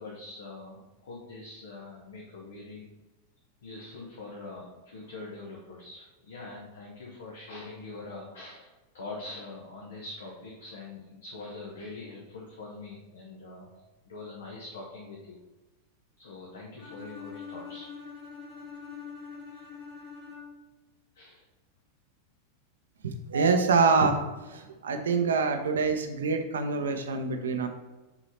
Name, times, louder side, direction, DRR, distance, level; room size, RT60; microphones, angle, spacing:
voice 1, 0.0-2.9 3.6-13.7 14.1-15.4 16.2-17.9 19.5-19.6 21.1-21.4, left 3 dB, 65° left, -2 dB, 1.0 m, -43 dB
Bowed string instrument, 16.8-20.8, left 6 dB, 40° left, 1.6 m, -44 dB
voice 2, 23.0-24.2 24.5-27.7, right 4 dB, 65° right, 6 dB, 0.7 m, -25 dB
6.0 x 4.0 x 4.1 m, 1.1 s
figure-of-eight pair, 90°, 0 cm